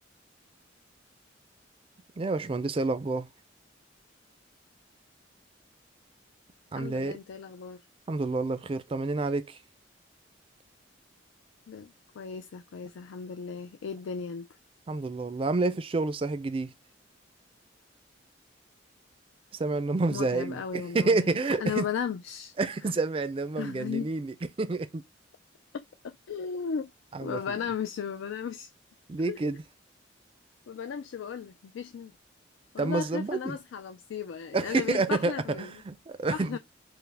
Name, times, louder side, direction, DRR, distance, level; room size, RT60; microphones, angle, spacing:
voice 1, 2.2-3.3 6.7-7.2 8.1-9.6 14.9-16.7 19.5-21.9 22.6-25.0 27.1-27.6 29.1-29.6 32.8-33.6 34.5-36.6, right 3 dB, 30° right, 0.4 m, -29 dB
voice 2, 6.7-7.8 11.7-14.5 20.1-22.5 23.6-24.1 26.0-26.9 27.2-28.7 29.3-29.4 30.7-32.1 32.7-35.7 36.3-36.6, left 7 dB, 85° left, 0.4 m, -35 dB
4.6 x 2.1 x 3.3 m
head